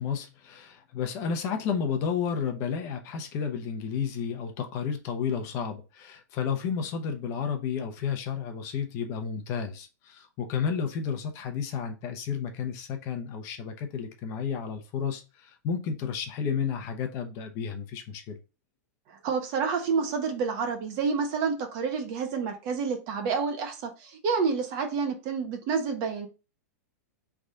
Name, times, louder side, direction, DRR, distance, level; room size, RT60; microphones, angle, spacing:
voice 1, 0.0-18.4, left 7 dB, 35° left, 0.9 m, -32 dB
voice 2, 19.1-26.3, right 5 dB, 40° right, 1.1 m, -29 dB
3.9 x 3.5 x 3.8 m
supercardioid pair, 155°, 9 cm